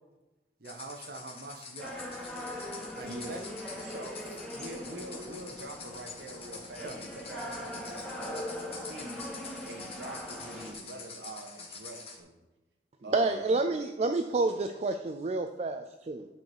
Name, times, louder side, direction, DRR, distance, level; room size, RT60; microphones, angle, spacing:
Small Gourd Shakers, 0.6-12.2, left 4 dB, 35° left, 1.4 m, -46 dB
voice 1, 0.6-2.0 2.9-3.4 6.8-7.0, right 3 dB, 60° right, 4 dB, 1.0 m, -43 dB
sound 1, 1.8-10.7, left 1 dB, 5° left, 1.9 m, -41 dB
voice 2, 3.0-9.2 9.7-12.3 13.0-13.6, right 1 dB, 75° right, 2 dB, 1.3 m, -45 dB
voice 3, 13.1-16.3, right 3 dB, 40° right, 7 dB, 0.4 m, -29 dB
9.4 x 4.9 x 4.6 m, 1.0 s
head